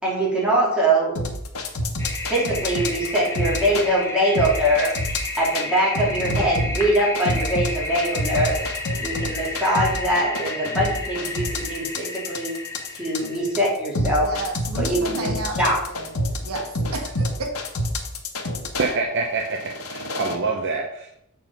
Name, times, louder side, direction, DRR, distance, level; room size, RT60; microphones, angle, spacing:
voice 1, 0.0-1.2 2.3-4.9 5.4-8.6 9.0-12.5 12.9-14.3 14.8-15.8, right 1 dB, 5° right, -6 dB, 2.8 m, -22 dB
sound 1, 1.2-3.9 4.4-5.7 6.0-18.9 19.5-20.4, left 1 dB, 85° left, 1.1 m, -27 dB
Toilet flush, 2.0-13.5, left 2 dB, 15° left, 1.2 m, -32 dB
voice 2, 14.2-17.5, right 2 dB, 85° right, 2 dB, 1.4 m, -32 dB
voice 3, 18.8-21.1, right 3 dB, 55° right, 2 dB, 0.8 m, -26 dB
7.4 x 4.5 x 5.4 m, 0.75 s
head